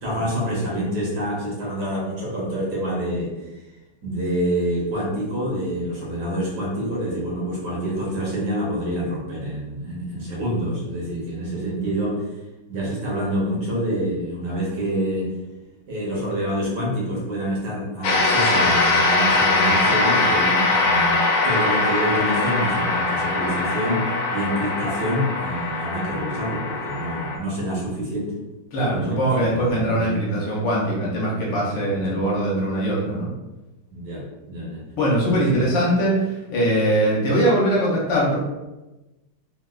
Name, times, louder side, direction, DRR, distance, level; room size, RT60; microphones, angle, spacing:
voice 1, 0.0-3.3 3.5-3.7 4.0-12.3 12.7-15.3 15.9-21.2 21.4-24.0 24.3-28.3 28.8-30.1 32.1-32.2 33.9-34.2 34.5-34.8 35.5-35.6, equal, 65° right, -5 dB, 1.3 m, -27 dB
sound 1, 18.0-27.4, left 3 dB, 85° left, 1.4 m, -21 dB
voice 2, 28.7-33.3 34.9-38.4, right 1 dB, 70° left, -5 dB, 1.5 m, -21 dB
3.6 x 2.3 x 2.4 m, 1.0 s
omnidirectional pair, 2.2 m